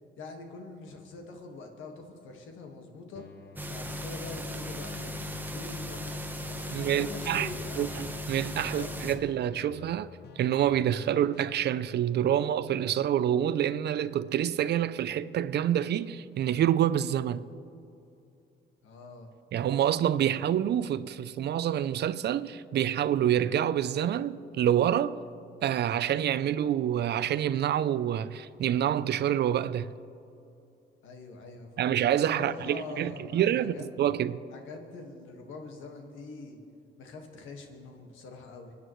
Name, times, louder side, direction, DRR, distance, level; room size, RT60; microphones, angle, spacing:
voice 1, 0.2-3.2 3.7-7.9 8.6-9.0 18.8-19.3 31.0-32.0 32.3-33.9 34.5-36.6 37.0-38.7, left 3 dB, 80° left, 1.7 m, -44 dB
sound 1, 3.1-11.9, left 7 dB, 55° left, 0.8 m, -50 dB
sound 2, 3.6-9.2, left 1 dB, 10° right, 1.0 m, -37 dB
voice 2, 6.7-7.5 7.8-10.1 10.4-17.5 19.5-25.2 25.6-29.9 31.8-34.4, right 10 dB, 60° right, 0.4 m, -27 dB
28.5 x 9.5 x 3.1 m
cardioid pair, 90°, 20 cm